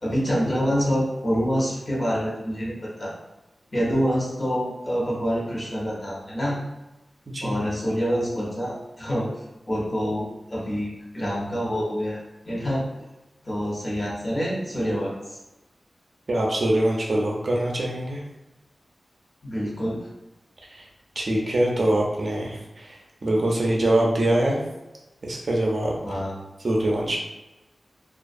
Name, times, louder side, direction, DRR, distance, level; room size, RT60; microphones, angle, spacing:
voice 1, 0.0-3.1 3.7-6.6 7.4-9.3 9.7-12.2 12.4-12.8 13.4-15.4 19.4-20.0 26.0-26.3, equal, 40° left, -5 dB, 0.9 m, -26 dB
voice 2, 16.3-18.2 20.7-20.9 21.2-24.6 25.2-26.0 26.6-27.2, right 1 dB, 55° right, -2 dB, 0.5 m, -23 dB
2.3 x 2.3 x 2.5 m, 1.0 s
wide cardioid pair, 85°, 0 cm